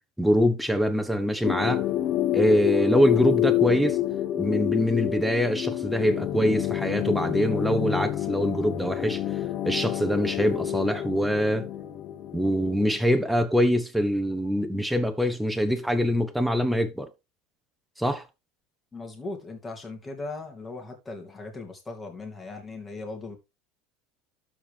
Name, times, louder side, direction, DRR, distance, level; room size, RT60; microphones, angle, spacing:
voice 1, 0.2-1.8 2.3-4.0 4.4-9.2 9.6-11.7 12.3-17.1 18.0-18.2, equal, ahead, 1.2 m, -24 dB
sound 1, 1.4-13.4, left 12 dB, 40° left, 0.9 m, -28 dB
voice 2, 18.9-23.4, left 3 dB, 15° left, 2.8 m, -38 dB
12.5 x 4.7 x 3.5 m
supercardioid pair, 130°, 0 cm